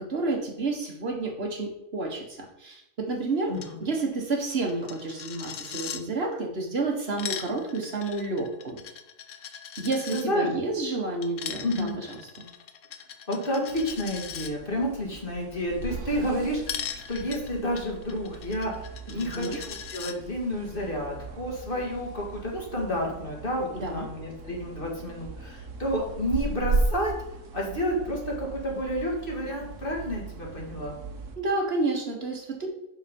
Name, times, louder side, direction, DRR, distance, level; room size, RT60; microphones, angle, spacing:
voice 1, 0.0-3.5 3.8-8.8 9.8-12.5 19.1-19.6 23.7-24.1 31.4-32.7, right 3 dB, 55° right, 2 dB, 1.5 m, -30 dB
Coin (dropping), 3.5-3.7 4.0-4.1 4.3-6.0 6.9-10.2 11.2-14.5 16.7-20.1, left 8 dB, 90° left, 1.1 m, -39 dB
voice 2, 10.1-10.5 11.6-12.0 13.3-18.7 19.1-27.1 27.5-30.9, equal, 45° left, -1 dB, 2.2 m, -30 dB
sound 1, 13.7-31.4, right 3 dB, 80° right, 1.4 m, -37 dB
7.2 x 6.3 x 5.2 m, 0.85 s
omnidirectional pair, 1.3 m